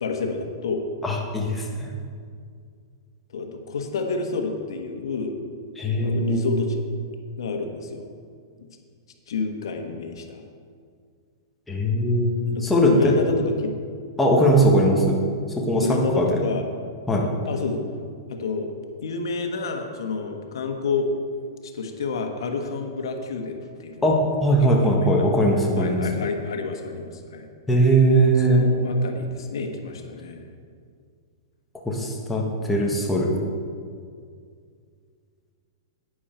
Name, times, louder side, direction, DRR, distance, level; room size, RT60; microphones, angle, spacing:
voice 1, 0.0-0.9 3.3-5.4 6.0-6.8 7.4-8.0 9.3-10.4 12.5-13.7 15.7-16.7 17.4-17.8 18.3-18.7 19.0-21.1 21.7-24.1 24.7-25.3 25.8-27.4 28.5-30.4, left 4 dB, 80° left, 4 dB, 1.4 m, -29 dB
voice 2, 1.0-1.9 5.8-6.5 11.7-13.1 14.2-15.2 15.6-15.8 16.2-16.4 17.1-17.2 24.0-26.0 27.7-28.6 31.8-33.3, right 1 dB, 5° left, -2 dB, 1.3 m, -20 dB
11.0 x 9.1 x 4.4 m, 2.2 s
hypercardioid pair, 155°, 2 cm